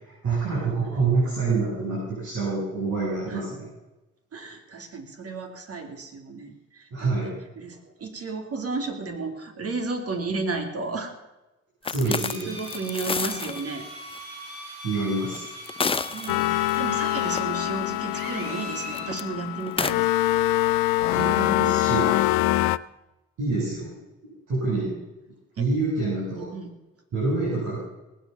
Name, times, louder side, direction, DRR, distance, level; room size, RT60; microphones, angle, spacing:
voice 1, 0.2-3.7 6.9-7.4 11.9-12.5 14.8-15.4 21.1-22.2 23.4-23.9 24.5-25.0 25.6-26.5 27.1-27.8, right 3 dB, 65° right, -8 dB, 7.5 m, -26 dB
voice 2, 4.3-11.1 11.8-11.9 12.5-13.8 16.0-20.1 25.6-25.7 26.5-26.7, right 3 dB, 50° right, 5 dB, 3.1 m, -33 dB
sound 1, 11.8-13.6 14.1-14.2 15.3-16.8 17.2-17.4 18.9-19.2 19.7-19.9, left 5 dB, 20° left, 0.5 m, -29 dB
Drill, 12.0-19.2, right 1 dB, 90° right, 3.9 m, -40 dB
sound 2, 16.3-22.8, left 17 dB, 90° left, 0.5 m, -24 dB
19.5 x 8.5 x 7.1 m, 1.0 s
supercardioid pair, 70°, 31 cm